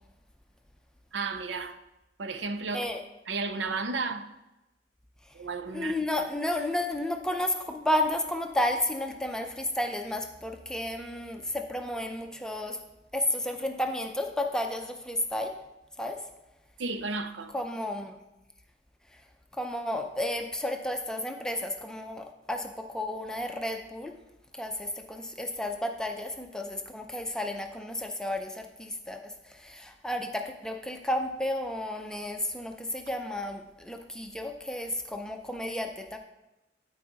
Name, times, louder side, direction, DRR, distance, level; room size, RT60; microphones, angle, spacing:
voice 1, 1.1-1.8 2.2-2.9 3.3-4.3 5.3-6.0 16.8-17.5, right 4 dB, 85° right, 0.6 m, -33 dB
voice 2, 5.7-12.8 13.1-15.5 16.0-16.2 17.5-18.2 19.6-24.1 24.5-36.2, left 1 dB, 5° left, 0.6 m, -32 dB
12.0 x 4.7 x 4.0 m
head